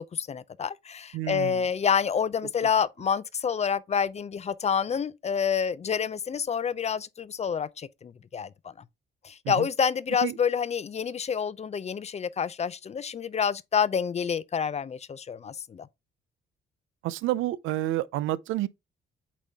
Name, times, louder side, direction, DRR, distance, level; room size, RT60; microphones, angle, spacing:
voice 1, 0.0-8.7 9.2-15.9, left 7 dB, 35° left, 0.5 m, -28 dB
voice 2, 1.1-1.6 9.5-9.7 10.2-10.3 17.0-18.7, right 15 dB, 90° right, 0.5 m, -29 dB
8.3 x 3.7 x 3.4 m
cardioid pair, 90°, 20 cm